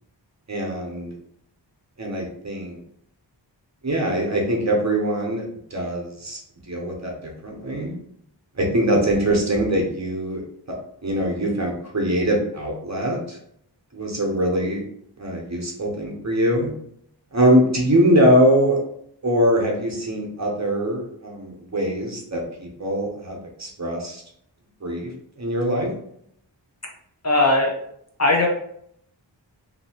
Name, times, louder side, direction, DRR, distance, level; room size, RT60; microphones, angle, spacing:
voice 1, 0.5-1.1 2.0-2.8 3.8-6.4 6.7-7.9 8.6-10.4 11.0-13.4 13.9-14.8 15.2-16.7 17.3-18.8 19.2-24.2 24.8-25.1 25.4-25.9, equal, 40° right, 0 dB, 0.8 m, -22 dB
voice 2, 27.2-27.8 28.2-28.5, left 2 dB, 35° left, 0 dB, 0.6 m, -18 dB
2.7 x 2.7 x 2.8 m, 0.70 s
wide cardioid pair, 60°, 44 cm